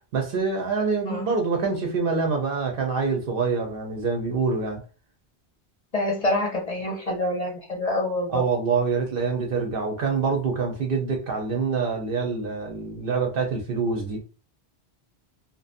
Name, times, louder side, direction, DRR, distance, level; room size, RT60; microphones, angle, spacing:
voice 1, 0.1-4.8 8.3-14.2, right 4 dB, 60° right, 0.8 m, -25 dB
voice 2, 5.9-8.4, left 1 dB, 45° left, 0.6 m, -26 dB
2.5 x 2.1 x 2.4 m
omnidirectional pair, 1.1 m